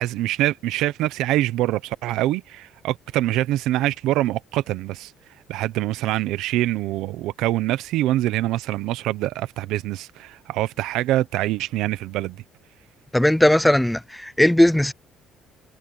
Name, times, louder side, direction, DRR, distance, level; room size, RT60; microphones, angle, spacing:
voice 1, 0.0-5.1 5.5-12.4, right 15 dB, 75° right, 0.9 m, -24 dB
voice 2, 13.1-14.9, left 1 dB, 5° left, 0.4 m, -18 dB
cardioid pair, 160°, 0 cm